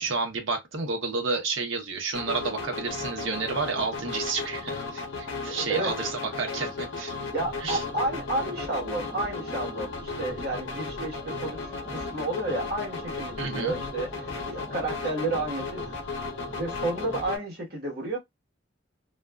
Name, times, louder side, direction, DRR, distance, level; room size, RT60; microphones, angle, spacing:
voice 1, 0.0-7.1 7.6-7.8 13.4-13.8, right 4 dB, 80° right, 0.8 m, -30 dB
sound 1, 2.1-17.4, left 3 dB, 80° left, 0.7 m, -35 dB
voice 2, 5.4-5.9 7.2-16.1 16.4-18.2, right 2 dB, 55° right, 1.1 m, -31 dB
sound 2, 7.3-17.3, right 1 dB, 5° right, 0.5 m, -45 dB
2.4 x 2.3 x 2.2 m
head